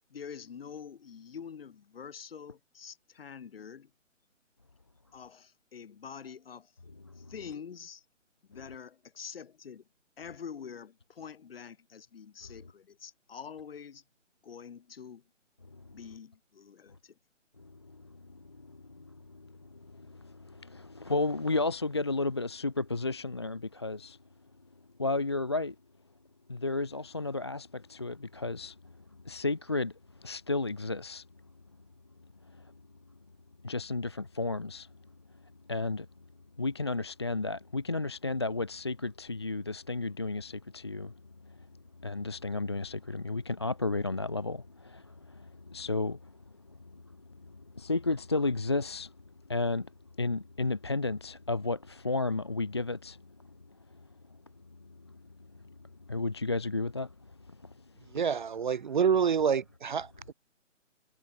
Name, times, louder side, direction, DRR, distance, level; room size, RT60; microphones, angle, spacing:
voice 1, 0.1-3.9 5.1-6.8 7.1-8.1 8.5-9.9 10.2-14.0 14.4-15.3 15.9-17.2, left 7 dB, 50° left, 6.1 m, -46 dB
voice 2, 17.6-24.2 25.0-25.8 26.5-28.9 29.2-29.9 30.2-31.3 32.5-32.7 33.6-34.9 35.7-36.1 36.6-41.1 41.5-41.6 42.0-46.4 46.8-47.0 47.4-49.1 49.5-49.9 50.2-53.2 55.6-55.7 56.1-57.1 57.5-57.7, left 3 dB, 20° left, 0.5 m, -33 dB
voice 3, 58.1-60.3, right 7 dB, 40° right, 1.0 m, -27 dB
figure-of-eight pair, 155°, 38 cm